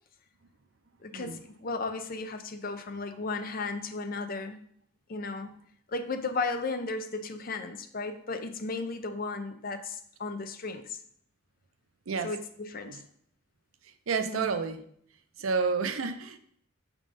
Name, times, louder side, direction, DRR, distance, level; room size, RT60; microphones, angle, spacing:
voice 1, 1.0-4.6 5.1-5.5 5.9-11.0 12.2-13.0 14.2-14.5, left 3 dB, 45° left, 8 dB, 0.6 m, -35 dB
voice 2, 14.1-14.8 15.4-16.4, right 5 dB, 90° right, 10 dB, 0.6 m, -30 dB
6.3 x 3.7 x 5.0 m, 0.65 s
head